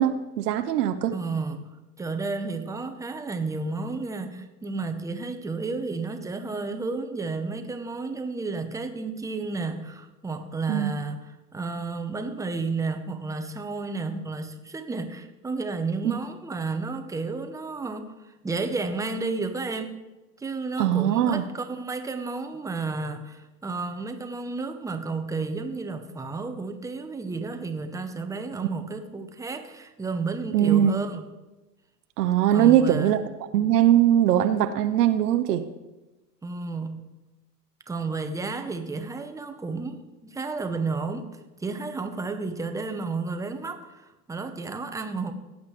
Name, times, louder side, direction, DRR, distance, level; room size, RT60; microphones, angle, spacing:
voice 1, 0.0-1.1 10.7-10.9 16.0-16.2 20.8-21.4 30.5-30.9 32.2-33.2 33.5-35.6, right 11 dB, 70° right, 0.9 m, -21 dB
voice 2, 1.1-1.7 2.0-18.1 18.4-20.0 20.4-31.3 32.5-33.2 36.4-37.0 37.9-45.3, right 3 dB, 5° right, 0.8 m, -32 dB
17.0 x 8.2 x 3.2 m
hypercardioid pair, 105°, 49 cm